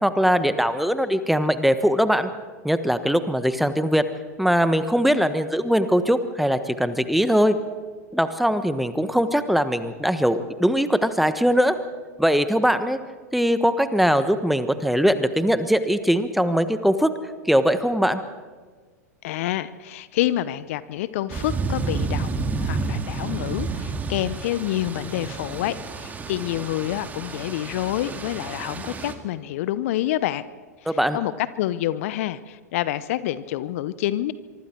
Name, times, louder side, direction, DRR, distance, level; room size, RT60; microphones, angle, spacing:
voice 1, 0.0-2.3 2.6-4.1 4.4-7.6 8.1-11.8 12.2-13.0 13.3-17.1 17.5-18.2 30.9-31.2, equal, ahead, 11 dB, 1.3 m, -21 dB
voice 2, 19.2-30.4 30.8-34.3, left 13 dB, 55° left, 16 dB, 0.8 m, -28 dB
sound 1, 21.3-29.1, right 4 dB, 20° right, 2.2 m, -30 dB
25.0 x 24.5 x 4.6 m, 1.5 s
figure-of-eight pair, 100°, 9 cm